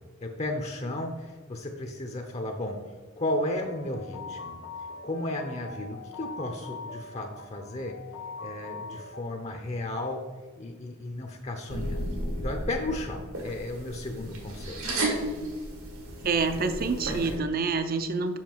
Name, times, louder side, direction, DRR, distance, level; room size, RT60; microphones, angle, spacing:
voice 1, 0.2-2.8 3.2-4.6 5.0-7.9 8.4-10.2 10.6-12.1 12.4-14.8, left 1 dB, 30° left, 4 dB, 0.6 m, -34 dB
sound 1, 3.5-9.2, left 4 dB, 80° left, 0.9 m, -42 dB
sound 2, 11.7-17.4, right 1 dB, 75° right, 1.7 m, -33 dB
voice 2, 16.2-18.4, right 4 dB, 45° right, 9 dB, 0.5 m, -27 dB
7.3 x 5.6 x 4.5 m, 1.5 s
head